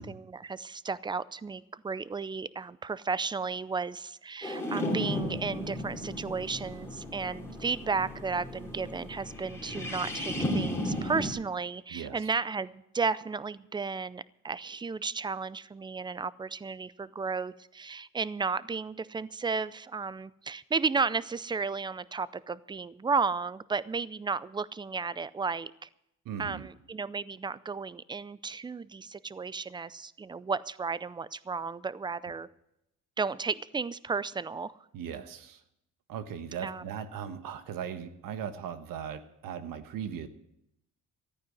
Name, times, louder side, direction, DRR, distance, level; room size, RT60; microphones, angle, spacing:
voice 1, 0.0-25.9 26.4-32.5 33.2-34.7 36.6-36.8, right 4 dB, 15° right, 18 dB, 0.4 m, -33 dB
sound 1, 4.4-11.3, left 1 dB, 10° left, 2.9 m, -34 dB
voice 2, 26.2-26.7 34.9-35.6 36.1-40.3, right 8 dB, 80° right, 10 dB, 1.4 m, -38 dB
14.0 x 9.4 x 7.9 m, 0.80 s
cardioid pair, 120°, 33 cm